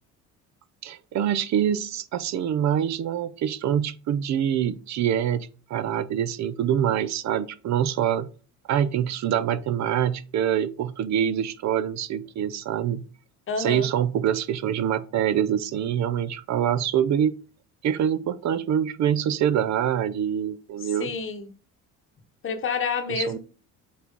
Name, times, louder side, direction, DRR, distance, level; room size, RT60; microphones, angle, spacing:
voice 1, 0.8-8.3 8.7-13.0 13.6-17.3 17.8-21.1 23.1-23.4, right 9 dB, 55° right, 0.6 m, -25 dB
voice 2, 13.5-13.9 20.8-21.5 22.4-23.4, left 5 dB, 35° left, 1.2 m, -29 dB
5.9 x 4.2 x 5.3 m
cardioid pair, 125°, 34 cm